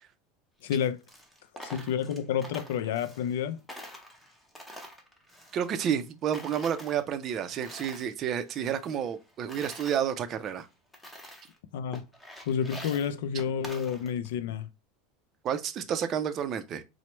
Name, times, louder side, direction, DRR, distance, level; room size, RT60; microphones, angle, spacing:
voice 1, 0.6-1.0 1.6-3.6 11.7-12.0 12.5-14.7, left 8 dB, 80° left, 0.4 m, -30 dB
Coin (dropping), 0.6-3.4 3.7-6.1 6.3-8.1 8.5-10.0 10.5-10.6 10.9-11.6 11.9-14.3, equal, 5° left, 0.7 m, -47 dB
voice 2, 5.5-10.7 15.4-16.8, right 8 dB, 35° right, 0.4 m, -30 dB
4.4 x 2.0 x 3.0 m
supercardioid pair, 140°, 0 cm